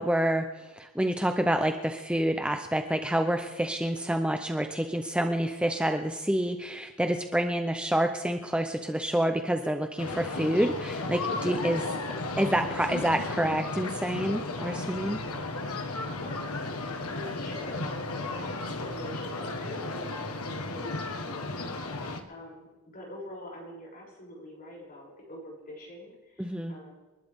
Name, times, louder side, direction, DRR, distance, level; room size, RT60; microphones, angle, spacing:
voice 1, 0.0-11.9 12.4-15.2 26.4-26.7, right 1 dB, 5° right, 5 dB, 0.7 m, -28 dB
sound 1, 10.0-22.2, left 2 dB, 90° left, 1.6 m, -34 dB
voice 2, 15.7-16.7 17.0-26.9, equal, 40° left, -4 dB, 7.4 m, -45 dB
28.5 x 12.0 x 3.7 m, 1.2 s
head